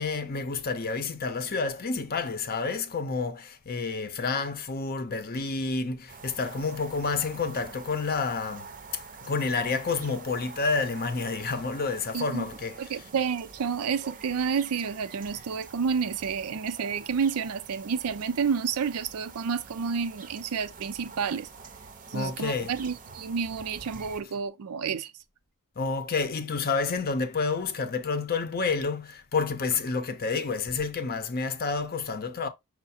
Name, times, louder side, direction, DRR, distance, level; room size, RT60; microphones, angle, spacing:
voice 1, 0.0-13.0 22.1-22.7 25.8-32.5, left 4 dB, 45° left, 0.6 m, -29 dB
sound 1, 6.1-24.2, right 5 dB, 35° right, 0.6 m, -46 dB
voice 2, 12.1-12.5 12.8-21.5 22.1-25.1, right 6 dB, 85° right, 0.5 m, -30 dB
5.6 x 2.0 x 4.2 m
head